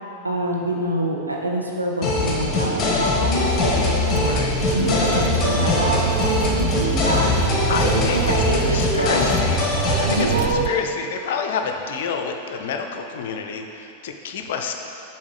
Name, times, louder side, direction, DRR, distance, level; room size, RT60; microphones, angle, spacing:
voice 1, 0.2-4.4 4.7-9.3 10.1-10.8, right 1 dB, 85° right, -1 dB, 0.6 m, -26 dB
sound 1, 2.0-10.4, left 2 dB, 25° left, 1.3 m, -22 dB
sound 2, 3.4-10.7, right 12 dB, 45° right, 0.3 m, -28 dB
voice 2, 4.2-4.5 5.1-5.4 7.7-9.6 10.0-14.7, left 6 dB, 55° left, 5 dB, 0.5 m, -29 dB
7.3 x 4.4 x 4.9 m, 2.9 s
figure-of-eight pair, 90°, 0 cm